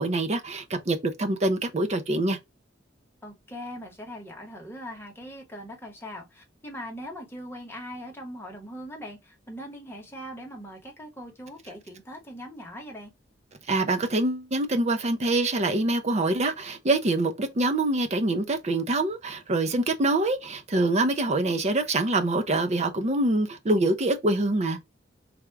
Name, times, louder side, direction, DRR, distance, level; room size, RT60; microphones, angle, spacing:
voice 1, 0.0-2.4 13.7-24.8, right 2 dB, 35° right, 0.6 m, -25 dB
voice 2, 3.2-13.1, equal, 15° left, 1.2 m, -41 dB
3.4 x 2.5 x 4.5 m
head